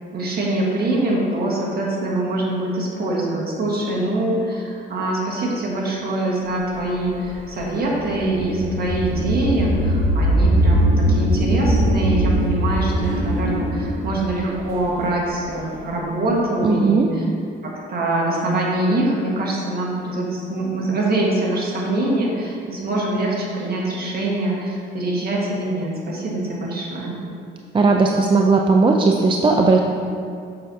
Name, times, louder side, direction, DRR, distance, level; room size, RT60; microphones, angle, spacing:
voice 1, 0.1-17.3 17.6-27.2, right 1 dB, 50° right, -3 dB, 1.6 m, -24 dB
sound 1, 6.7-15.7, right 1 dB, 85° right, 1.5 m, -21 dB
voice 2, 16.6-17.1 27.7-29.8, right 3 dB, 25° right, 1 dB, 0.4 m, -16 dB
7.5 x 6.0 x 2.8 m, 2.4 s
cardioid pair, 90°, 20 cm